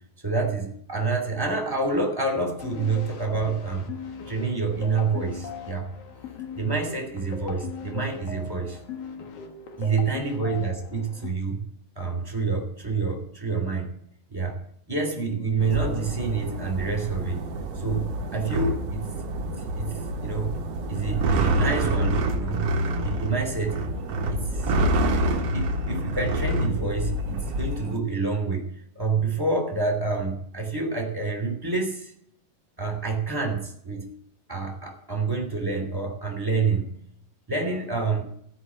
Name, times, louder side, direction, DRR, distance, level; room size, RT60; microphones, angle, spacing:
voice 1, 0.2-3.9 4.3-5.9 6.5-8.8 9.8-11.6 11.9-13.9 14.3-14.6 14.9-17.4 17.8-18.8 19.3-19.4 19.7-20.5 20.9-22.7 23.0-23.8 24.3-24.8 25.5-32.1 32.8-34.1 34.5-36.9 37.5-38.2, right 4 dB, 5° right, 2 dB, 2.3 m, -27 dB
sound 1, 2.6-11.3, left 6 dB, 55° left, 2.0 m, -39 dB
sound 2, 15.6-28.0, right 1 dB, 60° right, 1.8 m, -27 dB
14.5 x 6.1 x 9.6 m, 0.68 s
omnidirectional pair, 4.6 m